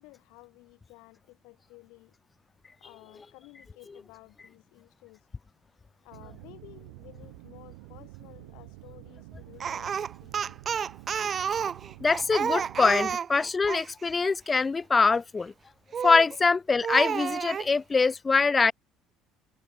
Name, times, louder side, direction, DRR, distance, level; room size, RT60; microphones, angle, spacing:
voice 1, 0.0-2.1 2.8-5.3 6.0-10.6 11.9-12.0 16.3-16.4, left 26 dB, 80° left, 7.0 m, -54 dB
sound 1, 6.1-13.2, right 32 dB, 85° right, 1.1 m, -48 dB
Speech, 9.6-13.9 15.9-16.4 16.8-17.7, right 7 dB, 40° right, 0.6 m, -30 dB
voice 2, 12.0-15.5 16.0-18.7, left 4 dB, 25° left, 0.3 m, -23 dB
supercardioid pair, 85°, 0 cm